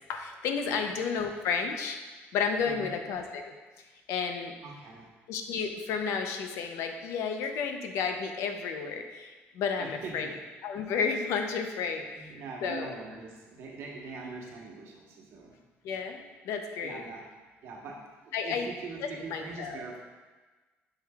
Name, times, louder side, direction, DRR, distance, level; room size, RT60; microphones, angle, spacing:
voice 1, 0.1-2.0 2.3-3.5 4.1-4.5 5.3-10.3 10.6-12.3 12.6-12.9 15.8-17.1 18.3-18.7 19.0-19.8, left 6 dB, 75° left, 5 dB, 0.6 m, -32 dB
voice 2, 4.6-5.1 9.8-10.3 11.8-15.6 16.8-17.3 17.6-20.0, right 4 dB, 60° right, -1 dB, 1.2 m, -43 dB
7.8 x 5.7 x 2.4 m, 1.3 s
cardioid pair, 165°, 5 cm